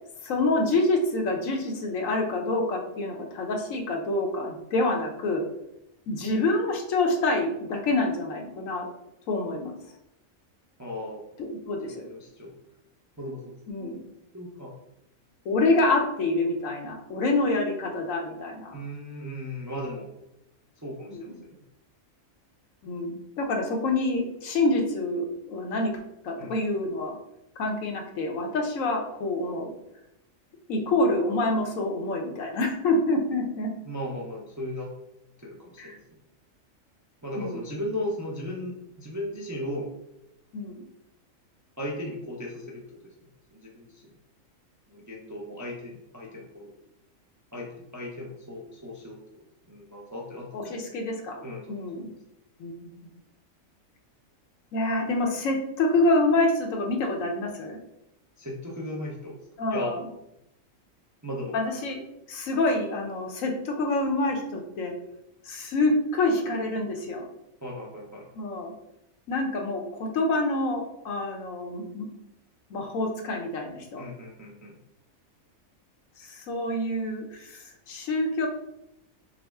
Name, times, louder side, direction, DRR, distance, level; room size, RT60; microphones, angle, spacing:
voice 1, 0.2-5.4 6.1-8.9 9.3-9.7 11.4-12.1 13.7-14.0 15.4-18.7 21.1-21.2 22.8-25.9 26.2-27.1 27.6-29.7 30.7-33.7 35.8-36.0 37.4-37.6 40.5-40.9 50.5-52.1 52.6-52.7 54.7-57.8 59.6-60.0 61.5-62.0 62.3-64.9 65.4-67.3 68.3-68.7 69.3-72.1 72.7-74.1 76.2-78.5, left 2 dB, 75° left, 2 dB, 1.1 m, -27 dB
voice 2, 10.8-11.3 11.8-12.5 13.2-14.0 14.3-14.8 18.7-20.1 20.8-21.5 26.4-26.5 33.8-34.9 35.4-36.0 37.2-39.9 41.8-43.1 43.5-44.0 44.9-46.7 47.5-50.7 51.4-51.8 58.4-59.4 59.7-59.9 61.2-61.6 67.6-68.3 74.0-74.8, left 1 dB, 25° right, -3 dB, 0.3 m, -36 dB
6.1 x 2.1 x 3.5 m, 0.83 s
omnidirectional pair, 1.4 m